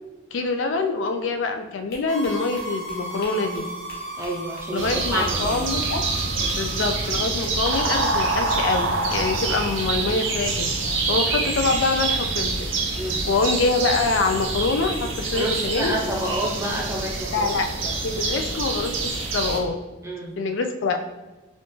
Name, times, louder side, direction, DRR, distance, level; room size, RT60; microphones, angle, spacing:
voice 1, 0.3-3.6 4.7-6.0 6.5-10.7 11.1-12.5 13.3-16.0 17.3-17.7 18.0-19.8 20.4-21.0, left 3 dB, 75° left, 6 dB, 0.4 m, -25 dB
sound 1, 1.9-7.8, left 1 dB, 50° left, 1.1 m, -45 dB
sound 2, 2.1-7.2, right 1 dB, 40° right, 0.8 m, -36 dB
voice 2, 4.2-5.6 6.4-6.7 13.0-13.2 15.3-18.4 20.0-20.3, right 1 dB, 15° right, -3 dB, 0.5 m, -30 dB
sound 3, 4.8-19.6, right 3 dB, 80° right, 0.6 m, -26 dB
4.2 x 2.3 x 3.1 m, 1.1 s
head